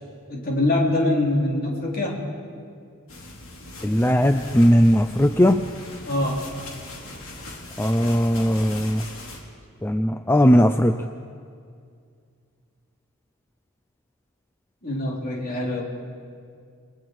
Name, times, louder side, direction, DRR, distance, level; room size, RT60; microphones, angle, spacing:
voice 1, 0.3-2.3 6.1-6.4 14.8-15.8, left 1 dB, 40° left, -2 dB, 3.7 m, -24 dB
sound 1, 3.1-9.4, left 2 dB, 65° left, 3.4 m, -40 dB
voice 2, 3.8-5.6 7.8-9.0 9.8-11.0, equal, 10° left, 7 dB, 0.5 m, -18 dB
29.5 x 20.5 x 4.7 m, 2.2 s
head